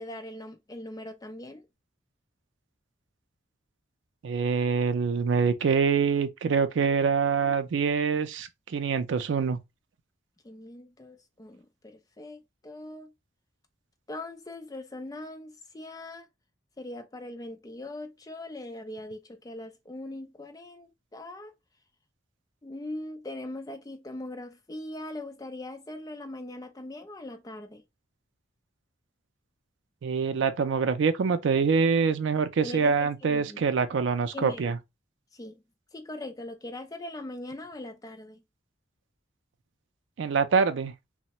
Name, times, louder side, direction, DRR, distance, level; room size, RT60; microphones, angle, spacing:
voice 1, 0.0-1.6 7.4-7.5 10.4-13.1 14.1-16.3 16.8-21.5 22.6-27.8 32.6-33.7 34.3-34.7 35.3-35.6 35.9-38.4, left 1 dB, 20° left, 0.4 m, -41 dB
voice 2, 4.2-9.6 30.0-34.8 40.2-40.9, right 5 dB, 75° right, 0.4 m, -25 dB
3.2 x 2.0 x 2.8 m
head